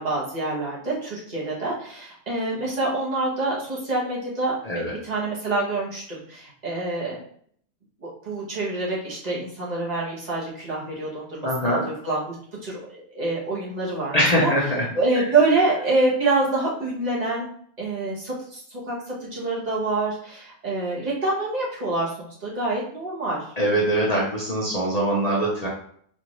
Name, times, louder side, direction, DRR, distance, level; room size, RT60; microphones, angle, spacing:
voice 1, 0.0-7.2 8.0-12.3 12.6-14.5 14.9-17.5 17.8-18.9 19.2-23.5, right 2 dB, 30° right, -5 dB, 1.2 m, -26 dB
voice 2, 11.4-11.9 14.1-14.9 15.1-15.2 23.6-25.7, equal, 35° left, -5 dB, 0.7 m, -22 dB
4.2 x 2.7 x 3.1 m, 0.62 s
omnidirectional pair, 1.5 m